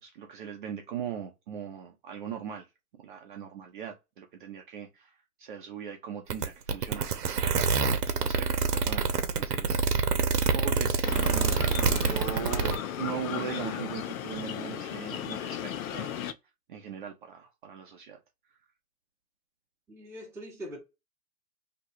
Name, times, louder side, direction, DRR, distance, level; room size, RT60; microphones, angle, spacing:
voice 1, 0.0-2.7 3.0-7.7 8.0-10.1 10.5-11.7 12.0-16.3 16.7-18.2, right 8 dB, 35° right, 0.6 m, -40 dB
sound 1, 6.3-12.8, right 5 dB, 80° right, 0.9 m, -26 dB
sound 2, 11.0-16.3, left 9 dB, 60° left, 0.6 m, -36 dB
voice 2, 19.9-20.8, equal, 5° right, 0.8 m, -42 dB
2.9 x 2.3 x 4.2 m
hypercardioid pair, 140°, 46 cm